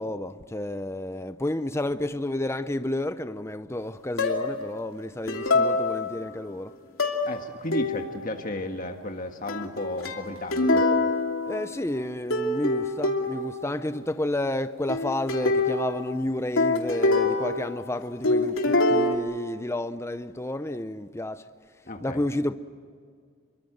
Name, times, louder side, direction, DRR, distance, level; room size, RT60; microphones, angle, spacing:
voice 1, 0.0-6.7 11.5-21.4 22.0-22.6, left 1 dB, 15° left, 0.6 m, -31 dB
sound 1, 4.2-4.7 5.3-6.3 7.0-7.4 7.7-8.3 9.5-12.0 12.3-13.7 14.9-18.0 18.2-19.1, left 2 dB, 85° left, 2.8 m, -25 dB
voice 2, 7.2-10.8 21.8-22.2, left 1 dB, 40° left, 1.6 m, -34 dB
28.0 x 24.0 x 8.0 m
head